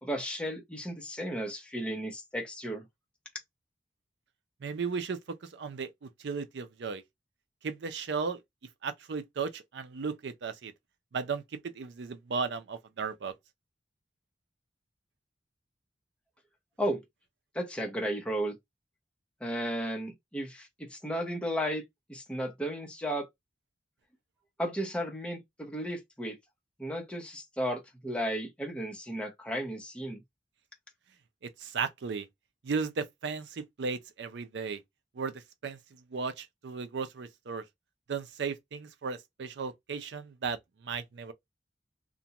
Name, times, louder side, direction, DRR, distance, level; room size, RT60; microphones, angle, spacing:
voice 1, 0.0-2.9 16.8-17.0 17.5-18.5 19.4-21.8 22.1-23.3 24.6-26.4 26.8-30.2, equal, 5° left, 0.8 m, -34 dB
voice 2, 4.6-7.0 7.6-8.4 8.8-10.7 11.1-13.3 31.6-32.3 32.6-34.8 35.2-37.6 38.1-41.3, right 5 dB, 65° right, 0.4 m, -35 dB
2.5 x 2.1 x 2.8 m
head